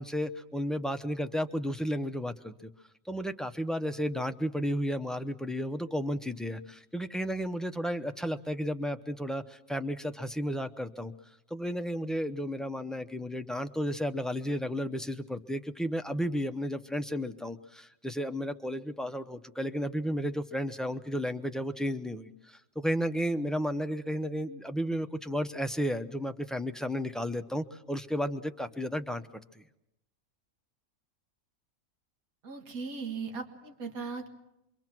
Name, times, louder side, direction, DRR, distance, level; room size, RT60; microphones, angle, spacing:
voice 1, 0.0-2.7 3.1-11.1 11.5-29.2 29.6-29.7, equal, ahead, 9 dB, 0.4 m, -33 dB
voice 2, 32.4-34.3, right 5 dB, 80° right, 4 dB, 2.2 m, -38 dB
26.5 x 23.5 x 6.1 m, 0.86 s
omnidirectional pair, 1.5 m